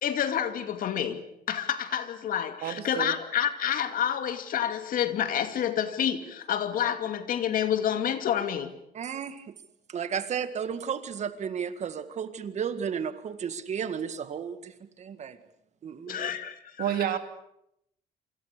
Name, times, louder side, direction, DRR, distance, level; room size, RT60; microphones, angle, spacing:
voice 1, 0.0-8.7 16.1-16.6 17.0-17.2, left 9 dB, 60° left, 2.5 m, -29 dB
voice 2, 2.6-3.1 16.8-17.2, right 11 dB, 70° right, 2.8 m, -29 dB
voice 3, 8.9-9.5 9.9-15.4 15.8-16.3, right 7 dB, 45° right, 1.9 m, -33 dB
26.5 x 26.0 x 6.8 m
cardioid pair, 130°, 16 cm